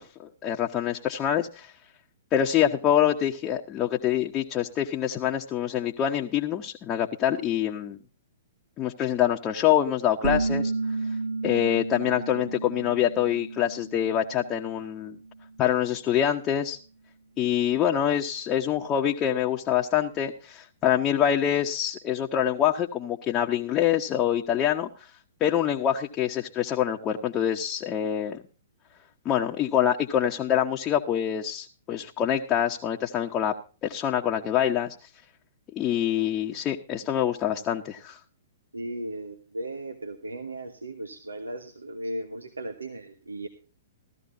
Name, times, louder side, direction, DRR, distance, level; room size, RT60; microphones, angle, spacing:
voice 1, 0.4-1.7 2.3-8.0 8.8-10.7 11.4-15.2 15.6-16.8 17.4-24.9 25.4-28.4 29.2-33.5 33.8-35.0 35.8-38.2, left 10 dB, 25° left, 1 dB, 1.0 m, -25 dB
sound 1, 10.2-15.6, right 3 dB, 60° right, 1.5 m, -32 dB
voice 2, 38.7-43.5, right 1 dB, 85° right, 7 dB, 1.4 m, -36 dB
16.0 x 13.5 x 2.7 m, 0.36 s
figure-of-eight pair, 120°, 0 cm